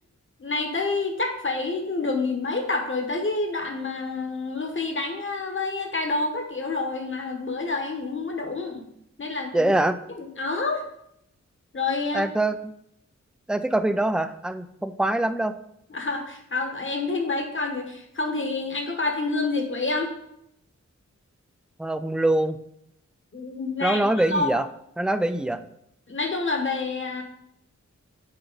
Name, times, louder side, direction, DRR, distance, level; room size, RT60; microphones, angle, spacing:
voice 1, 0.4-8.8 9.2-9.7 10.1-10.9 11.7-12.2 15.9-20.1 23.3-24.5 26.1-27.2, left 3 dB, 45° left, 4 dB, 1.2 m, -28 dB
voice 2, 9.5-10.0 12.1-12.6 13.5-15.5 21.8-22.6 23.8-24.6 25.0-25.6, right 1 dB, 5° right, 10 dB, 0.3 m, -23 dB
7.9 x 4.8 x 4.0 m, 0.76 s
wide cardioid pair, 95°, 29 cm